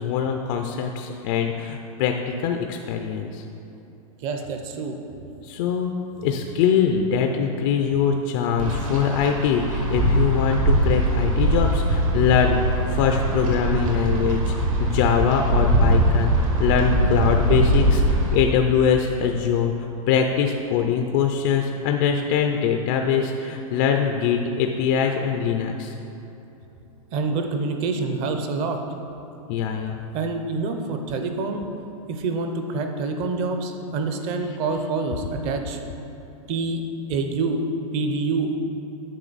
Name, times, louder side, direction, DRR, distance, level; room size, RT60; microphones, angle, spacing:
voice 1, 0.0-3.4 5.4-6.0 6.2-12.6 12.9-14.5 14.8-19.7 20.1-25.9 29.5-30.0, left 7 dB, 30° left, 4 dB, 0.3 m, -23 dB
voice 2, 4.2-5.0 27.1-28.8 30.1-31.6 32.1-35.8 36.5-36.8 37.1-37.6 37.9-38.5, right 3 dB, 30° right, 5 dB, 0.6 m, -26 dB
Wind, 8.6-18.4, right 1 dB, 65° right, 1.6 m, -21 dB
9.2 x 6.0 x 4.0 m, 3.0 s
supercardioid pair, 165°, 18 cm